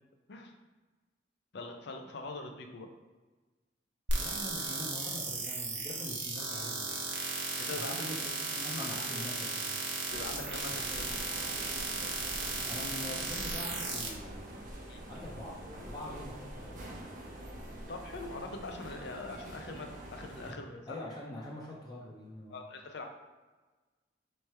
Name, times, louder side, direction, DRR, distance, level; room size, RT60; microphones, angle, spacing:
voice 1, 1.5-2.9 7.6-8.1 8.8-8.9 10.1-11.2 14.9-15.0 17.9-21.1 22.5-23.1, left 2 dB, 65° left, 4 dB, 0.6 m, -43 dB
voice 2, 4.1-7.0 7.7-9.8 12.7-14.6 15.1-17.0 20.4-20.6 20.9-22.6, left 1 dB, 25° left, -5 dB, 0.6 m, -44 dB
sound 1, 4.1-14.1, right 3 dB, 70° right, 0.9 m, -35 dB
sound 2, 10.1-20.5, right 1 dB, 45° right, 0.7 m, -45 dB
3.3 x 3.2 x 4.3 m, 1.3 s
head